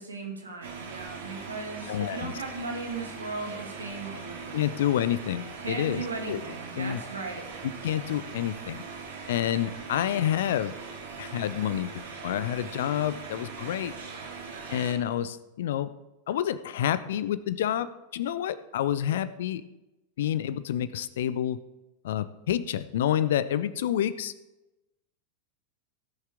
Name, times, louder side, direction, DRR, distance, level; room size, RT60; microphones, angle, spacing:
voice 1, 0.0-4.8 5.6-7.6, right 3 dB, 75° right, 0 dB, 2.3 m, -37 dB
sound 1, 0.6-14.9, right 5 dB, 60° right, 2.3 m, -41 dB
voice 2, 1.9-2.3 4.5-6.4 6.8-7.0 7.8-8.8 9.3-10.7 11.2-13.9 14.7-15.9 16.3-19.6 20.2-21.6 22.0-24.3, left 11 dB, 60° left, 16 dB, 0.5 m, -28 dB
17.0 x 7.3 x 3.6 m, 1.0 s
figure-of-eight pair, 90°, 0 cm